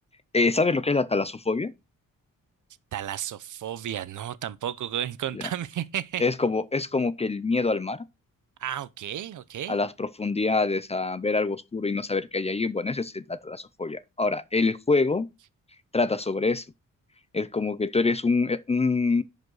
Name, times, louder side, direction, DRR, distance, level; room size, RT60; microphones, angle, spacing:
voice 1, 0.3-1.7 5.3-5.5 6.2-8.0 9.7-15.3 15.9-16.6 17.3-19.2, left 3 dB, 20° left, 0.4 m, -25 dB
voice 2, 2.9-6.2 8.6-9.8, right 10 dB, 65° right, 0.7 m, -33 dB
11.0 x 5.2 x 3.9 m
wide cardioid pair, 175°, 33 cm